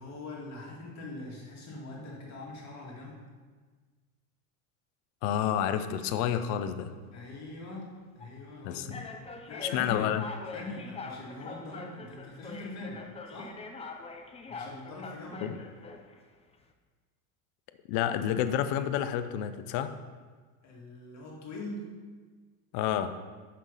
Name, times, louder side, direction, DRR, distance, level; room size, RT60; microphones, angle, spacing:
voice 1, 0.0-3.2 7.1-10.1 10.5-13.6 14.5-15.6 20.6-21.9, left 2 dB, 35° left, -3 dB, 2.4 m, -43 dB
voice 2, 5.2-6.9 8.6-9.0 9.7-10.2 15.4-15.6 17.9-20.0 22.7-23.2, left 10 dB, 55° left, 10 dB, 0.7 m, -29 dB
sound 1, 5.9-6.4 7.2-7.4 8.2-8.3 8.9-16.2, left 3 dB, 15° left, 0.6 m, -44 dB
6.1 x 5.9 x 5.4 m, 1.5 s
hypercardioid pair, 100°, 45 cm